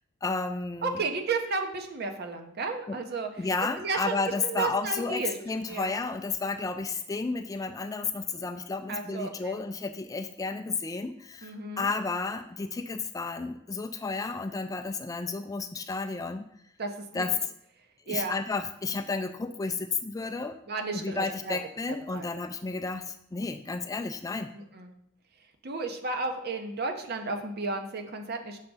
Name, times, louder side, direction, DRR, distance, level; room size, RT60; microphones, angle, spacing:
voice 1, 0.2-1.0 2.9-3.0 3.4-16.5 17.1-17.3 18.1-20.6 20.9-24.5, left 4 dB, 20° left, 6 dB, 0.3 m, -32 dB
voice 2, 0.8-3.3 3.8-4.2 4.4-5.4 5.7-5.9 8.9-9.6 11.4-11.9 16.8-17.2 18.1-18.3 20.7-21.6 22.1-22.3 24.5-24.9 25.6-28.6, right 3 dB, 55° right, 5 dB, 0.8 m, -33 dB
6.6 x 3.5 x 5.4 m, 0.74 s
head